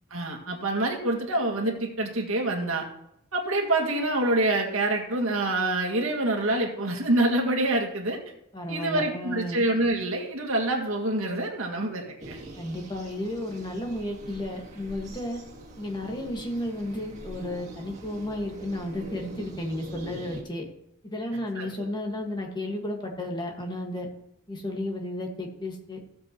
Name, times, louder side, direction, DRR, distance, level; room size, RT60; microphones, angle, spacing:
voice 1, 0.1-2.9 3.3-8.2 8.7-12.4 21.6-21.7, right 2 dB, 75° right, 1 dB, 2.1 m, -26 dB
voice 2, 8.5-9.6 12.6-15.4 15.8-20.7 21.0-24.1 24.5-26.0, left 1 dB, 20° left, 1 dB, 1.7 m, -33 dB
sound 1, 12.2-20.4, right 1 dB, 30° right, 2.2 m, -44 dB
15.5 x 7.6 x 3.1 m, 0.77 s
head